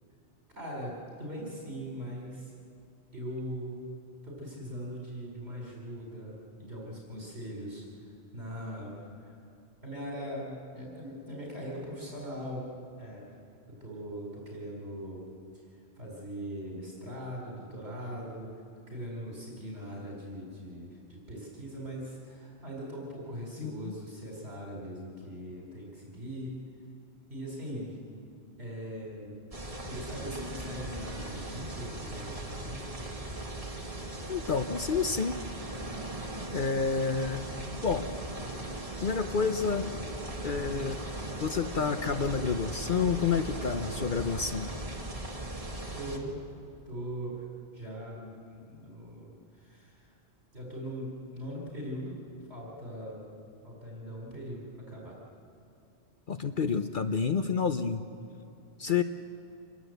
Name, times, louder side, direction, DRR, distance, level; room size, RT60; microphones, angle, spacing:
voice 1, 0.5-2.5 3.1-3.8 4.2-9.4 9.8-13.3 13.8-15.3 15.5-26.6 27.3-28.0 28.6-29.5 29.9-33.1 45.6-46.4 46.9-47.5 47.7-50.1 50.5-52.2 52.5-53.2 53.6-55.2, equal, 65° right, -2 dB, 4.7 m, -41 dB
voice 2, 23.6-23.9 34.3-35.4 36.5-37.4 37.8-38.1 39.0-39.9 40.4-41.0 41.4-44.7 56.3-58.0 58.8-59.0, left 5 dB, 50° left, 8 dB, 0.9 m, -29 dB
sound 1, 29.5-46.2, right 1 dB, 30° right, 2.2 m, -38 dB
26.0 x 21.0 x 8.0 m, 2.5 s
omnidirectional pair, 1.2 m